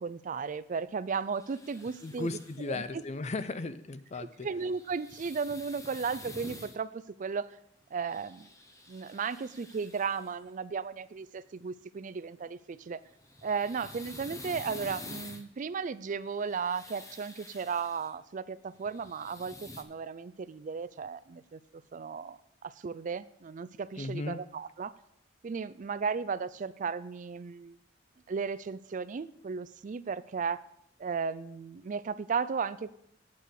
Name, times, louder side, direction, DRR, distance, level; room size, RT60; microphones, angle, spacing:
voice 1, 0.0-2.4 2.7-3.0 4.2-7.6 7.9-8.5 8.9-13.0 13.4-24.9 25.4-27.8 28.3-30.6 31.0-33.1, right 5 dB, 45° right, 16 dB, 0.4 m, -35 dB
sound 1, 1.3-2.7 4.6-6.8 8.0-10.3 13.1-15.4 16.2-18.1 18.7-19.8, left 2 dB, 15° left, 0.8 m, -48 dB
voice 2, 2.0-4.5 24.0-24.4, left 3 dB, 35° left, 13 dB, 0.5 m, -36 dB
8.8 x 8.3 x 4.8 m, 0.75 s
head